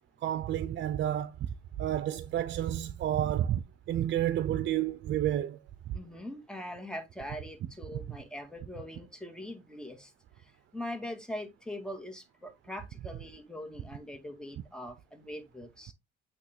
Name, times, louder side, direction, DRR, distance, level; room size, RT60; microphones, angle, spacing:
voice 1, 0.2-1.4 1.8-5.6 5.9-6.0, right 11 dB, 65° right, 0.5 m, -30 dB
voice 2, 5.9-10.1 10.4-15.9, left 1 dB, 5° left, 1.9 m, -42 dB
8.4 x 3.0 x 4.2 m
cardioid pair, 90°, 20 cm